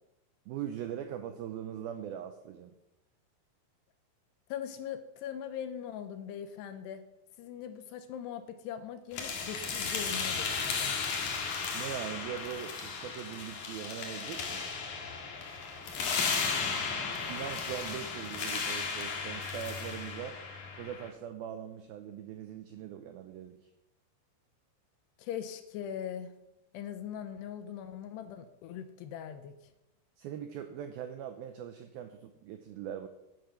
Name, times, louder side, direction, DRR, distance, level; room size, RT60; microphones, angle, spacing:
voice 1, 0.5-2.7 11.7-14.7 17.3-20.3 20.8-23.7 30.2-33.1, right 10 dB, 90° right, 7 dB, 2.1 m, -41 dB
voice 2, 4.5-7.0 7.4-11.0 25.2-26.3 26.7-29.6, left 9 dB, 75° left, 10 dB, 2.7 m, -41 dB
sound 1, 9.1-21.1, left 5 dB, 55° left, 2.6 m, -35 dB
10.5 x 10.5 x 5.8 m, 0.89 s
omnidirectional pair, 5.2 m